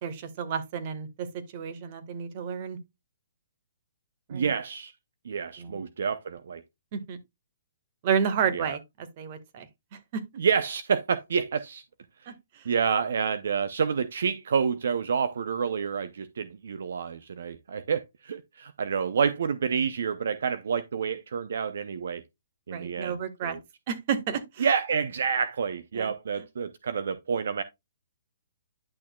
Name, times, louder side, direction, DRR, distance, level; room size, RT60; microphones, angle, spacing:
voice 1, 0.0-2.8 4.3-4.5 5.6-5.8 6.9-7.2 8.0-10.2 12.3-12.7 22.7-23.6 23.9-24.7 25.9-26.1, right 7 dB, 40° right, 1.5 m, -31 dB
voice 2, 4.3-4.9 5.2-6.6 8.5-8.8 10.4-11.8 12.2-12.3 12.7-22.2 22.7-23.6 24.6-27.6, right 6 dB, 70° right, 0.7 m, -28 dB
10.5 x 6.2 x 2.3 m
hypercardioid pair, 140°, 0 cm